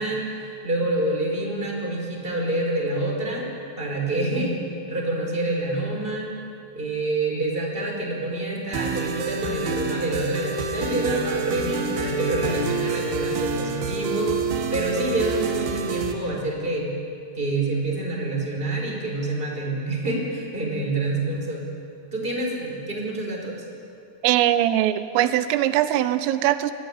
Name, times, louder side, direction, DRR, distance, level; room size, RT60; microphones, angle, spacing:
voice 1, 0.0-3.5 3.8-4.6 4.9-6.3 6.7-14.3 14.7-16.9 17.3-21.7 22.1-23.5, right 2 dB, 10° right, -1 dB, 4.1 m, -27 dB
sound 1, 8.7-16.1, right 4 dB, 60° right, 3.1 m, -27 dB
voice 2, 24.2-26.7, right 12 dB, 85° right, 12 dB, 3.4 m, -21 dB
24.0 x 15.5 x 9.6 m, 2.5 s
omnidirectional pair, 5.8 m